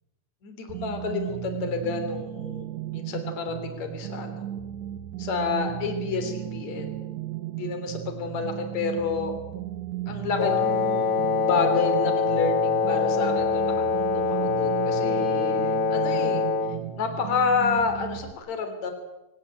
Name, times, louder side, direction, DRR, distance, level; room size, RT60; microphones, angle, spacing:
voice 1, 0.4-2.7 2.9-4.5 5.2-6.9 7.5-9.3 10.1-16.5 17.0-18.9, left 4 dB, 50° left, 7 dB, 4.4 m, -29 dB
sound 1, 0.7-18.3, right 12 dB, 65° right, 2.0 m, -35 dB
Wind instrument woodwind instrument, 10.4-16.8, left 5 dB, 90° left, 3.7 m, -24 dB
24.5 x 19.5 x 8.8 m, 0.98 s
omnidirectional pair, 4.4 m